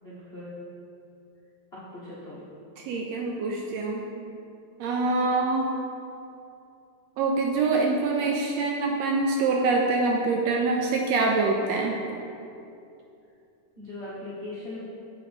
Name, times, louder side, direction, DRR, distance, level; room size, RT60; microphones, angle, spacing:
voice 1, 0.0-0.6 1.9-2.4 13.8-14.8, left 2 dB, 80° left, -10 dB, 0.5 m, -39 dB
voice 2, 2.8-4.0 4.8-5.7 7.2-11.9, right 3 dB, 80° right, 1 dB, 1.5 m, -25 dB
7.6 x 4.8 x 4.1 m, 2.7 s
omnidirectional pair, 3.3 m